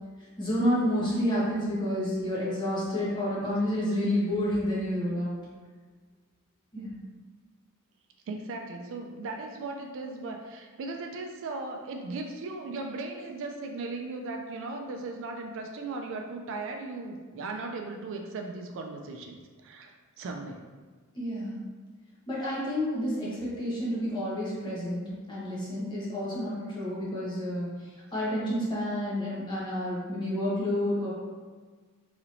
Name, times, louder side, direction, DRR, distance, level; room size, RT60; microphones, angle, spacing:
voice 1, 0.4-5.4 6.7-6.9 21.1-21.6 22.3-27.7 28.1-31.1, equal, 20° left, -8 dB, 0.9 m, -29 dB
voice 2, 8.3-20.7, right 3 dB, 60° right, 3 dB, 0.3 m, -37 dB
3.0 x 2.9 x 2.5 m, 1.4 s
head